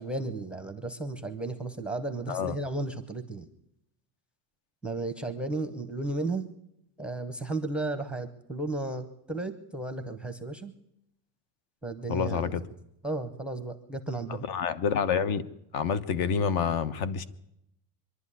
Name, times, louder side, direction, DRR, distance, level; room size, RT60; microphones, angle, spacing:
voice 1, 0.0-3.5 4.8-6.5 7.0-10.7 11.8-12.4 13.0-14.4, right 2 dB, ahead, 8 dB, 0.7 m, -34 dB
voice 2, 12.1-12.6 14.3-15.4 15.7-17.2, left 6 dB, 55° left, 14 dB, 1.2 m, -28 dB
23.5 x 11.5 x 9.9 m, 0.80 s
cardioid pair, 175°, 43 cm